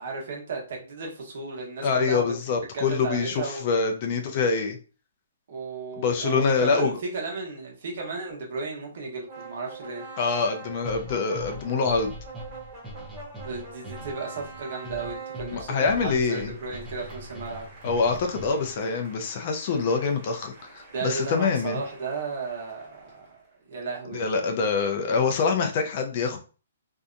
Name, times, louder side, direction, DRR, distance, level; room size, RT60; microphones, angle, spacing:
voice 1, 0.0-2.2 2.7-3.6 5.5-10.0 13.4-17.7 20.9-23.4 23.7-24.3, right 4 dB, 55° right, 0 dB, 1.0 m, -34 dB
voice 2, 1.8-4.8 6.0-6.9 10.2-12.2 15.5-16.5 17.8-21.8 24.1-26.4, left 5 dB, 40° left, 4 dB, 0.4 m, -25 dB
sound 1, 9.3-23.4, right 4 dB, 25° right, 1.4 m, -45 dB
sound 2, 10.8-18.8, left 1 dB, 10° right, 0.8 m, -41 dB
2.7 x 2.1 x 2.5 m, 0.36 s
hypercardioid pair, 155°, 0 cm